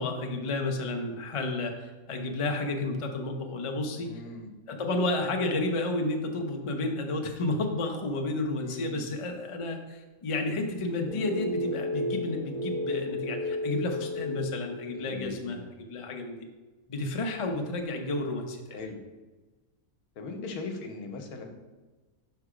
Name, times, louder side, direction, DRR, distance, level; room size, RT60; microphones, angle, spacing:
voice 1, 0.0-4.1 4.7-16.4 16.9-18.8, left 2 dB, 50° left, 3 dB, 0.3 m, -31 dB
voice 2, 4.0-4.5 8.6-9.1 14.9-15.7 18.7-19.0 20.2-21.4, left 3 dB, 85° left, 3 dB, 1.3 m, -39 dB
sound 1, 11.1-15.3, left 2 dB, 75° right, 1.5 m, -33 dB
5.8 x 3.4 x 4.8 m, 1.2 s
omnidirectional pair, 1.6 m